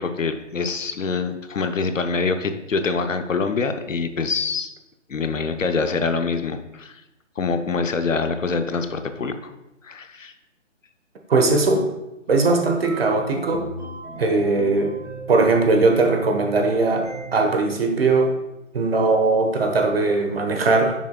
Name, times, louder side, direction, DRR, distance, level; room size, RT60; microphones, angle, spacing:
voice 1, 0.0-4.7 5.1-7.0 7.4-9.5 9.8-10.3, left 4 dB, 85° left, 9 dB, 0.7 m, -25 dB
voice 2, 11.3-11.9 12.3-13.7 14.2-14.9 15.3-18.3 18.7-20.9, right 3 dB, 50° right, 4 dB, 1.1 m, -19 dB
sound 1, 12.8-15.4 15.8-17.6, right 3 dB, 15° right, 2.1 m, -37 dB
7.0 x 6.3 x 2.2 m, 0.94 s
figure-of-eight pair, 145°, 38 cm